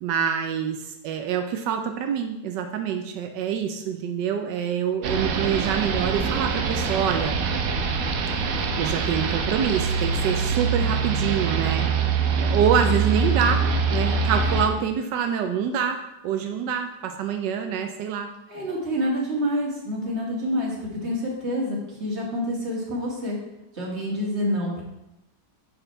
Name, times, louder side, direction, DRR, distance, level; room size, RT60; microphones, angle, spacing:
voice 1, 0.0-7.4 8.8-11.9 12.4-13.6 13.9-18.3, right 8 dB, 90° right, 5 dB, 1.3 m, -26 dB
sound 1, 5.0-14.7, right 5 dB, 60° right, 1.1 m, -24 dB
voice 2, 18.5-23.4 23.7-24.8, equal, 40° right, -3 dB, 2.2 m, -27 dB
7.9 x 5.3 x 4.5 m, 0.90 s
omnidirectional pair, 1.8 m